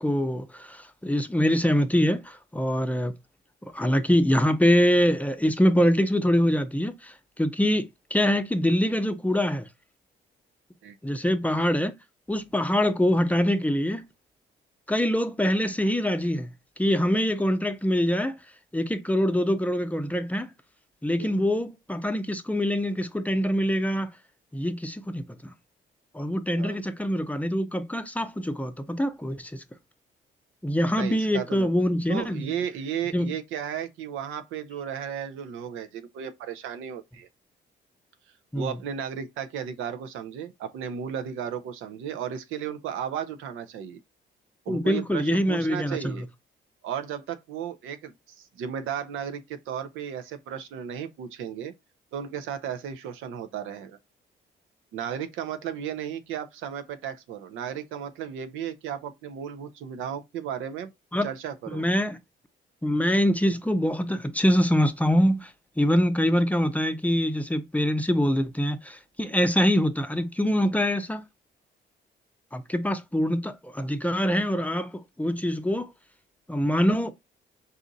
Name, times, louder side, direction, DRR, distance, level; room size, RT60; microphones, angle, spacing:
voice 1, 0.0-3.1 3.6-9.7 11.0-11.9 12.3-14.0 14.9-16.5 16.8-18.4 18.7-20.5 21.0-24.1 24.5-25.5 26.1-29.6 30.6-32.5 33.1-33.3 38.5-38.8 44.7-46.2 61.1-61.3 61.7-62.2 62.8-71.3 72.5-75.9 76.5-77.1, equal, 5° left, 0.5 m, -24 dB
voice 2, 30.9-31.7 32.1-37.3 38.5-44.0 44.7-46.2 46.8-51.7 52.1-54.0 54.9-60.9 61.2-61.8, right 8 dB, 85° right, 0.6 m, -34 dB
4.1 x 2.5 x 3.9 m
cardioid pair, 90°, 20 cm